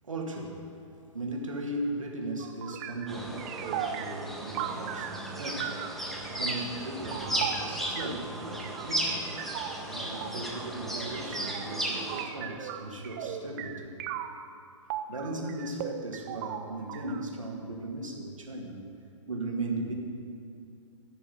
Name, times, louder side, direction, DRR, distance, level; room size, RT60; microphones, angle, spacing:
voice 1, 0.0-0.7 1.1-6.0 6.3-9.5 9.9-13.9 15.1-18.8 19.3-19.9, right 2 dB, 75° right, 0 dB, 2.3 m, -37 dB
sound 1, 2.4-14.5 14.9-17.3, right 9 dB, 30° right, 0.6 m, -39 dB
sound 2, 3.1-12.2, right 1 dB, ahead, 1.4 m, -35 dB
14.5 x 6.9 x 6.8 m, 2.5 s
figure-of-eight pair, 120°, 17 cm